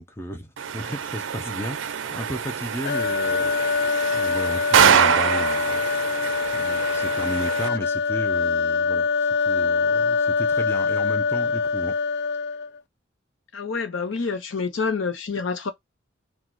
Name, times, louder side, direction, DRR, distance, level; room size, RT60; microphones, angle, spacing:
voice 1, 0.0-5.9 6.5-11.9, equal, 15° left, 0.6 m, -34 dB
sound 1, 0.6-7.7, right 8 dB, 75° right, 0.4 m, -25 dB
sound 2, 2.8-12.8, left 5 dB, 55° left, 0.3 m, -24 dB
voice 2, 13.5-15.7, left 4 dB, 85° left, 0.8 m, -27 dB
3.9 x 2.3 x 4.5 m
head